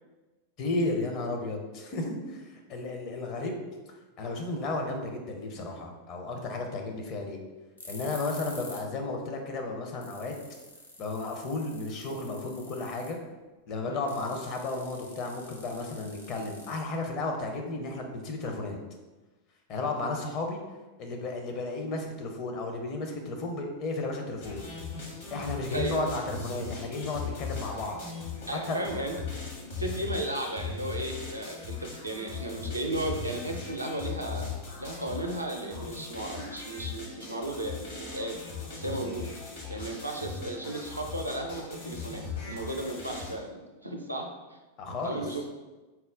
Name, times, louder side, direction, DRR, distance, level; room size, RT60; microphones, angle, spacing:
voice 1, 0.6-3.6 4.2-7.4 7.9-10.3 11.0-13.2 13.7-18.8 19.7-20.6 21.0-24.7 25.3-28.0 28.5-28.8 44.8-45.3, left 2 dB, 40° left, 2 dB, 0.6 m, -33 dB
sound 1, 7.8-8.9 9.2-9.3 9.7-9.8 10.0-13.2 14.1-17.2, left 2 dB, 80° left, 0.6 m, -48 dB
sound 2, 24.4-43.4, left 5 dB, 60° left, 1.1 m, -39 dB
voice 2, 25.7-26.1 28.5-29.2 29.8-34.5 34.8-38.4 38.7-39.3 39.7-44.6 45.0-45.5, right 1 dB, 85° right, 1 dB, 0.4 m, -35 dB
4.3 x 2.1 x 3.7 m, 1.2 s
figure-of-eight pair, 90°, 0 cm